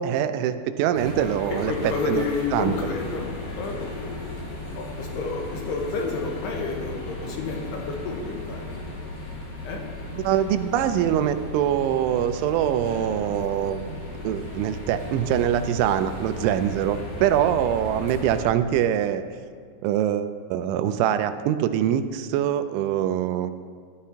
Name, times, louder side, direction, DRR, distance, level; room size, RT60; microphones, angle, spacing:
voice 1, 0.0-1.7 2.1-2.3 2.5-2.7 10.2-13.8 14.2-19.2 19.8-23.5, right 10 dB, 90° right, 10 dB, 3.0 m, -24 dB
sound 1, 0.9-18.4, left 2 dB, 55° left, 4.8 m, -36 dB
voice 2, 1.5-4.2 4.7-8.6 9.6-9.8 17.0-17.1, left 4 dB, 70° left, 0 dB, 2.9 m, -30 dB
14.0 x 11.5 x 2.8 m, 2.1 s
omnidirectional pair, 5.3 m